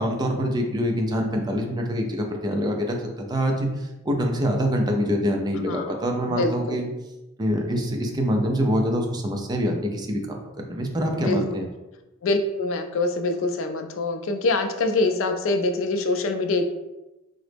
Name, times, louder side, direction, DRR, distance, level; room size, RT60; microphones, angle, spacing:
voice 1, 0.0-3.0 3.3-3.7 4.1-6.9 7.4-11.6, equal, 20° right, 2 dB, 0.4 m, -25 dB
voice 2, 5.7-6.8 11.1-11.4 12.2-16.7, left 2 dB, 75° left, 6 dB, 0.4 m, -25 dB
3.7 x 2.0 x 3.3 m, 1.0 s
head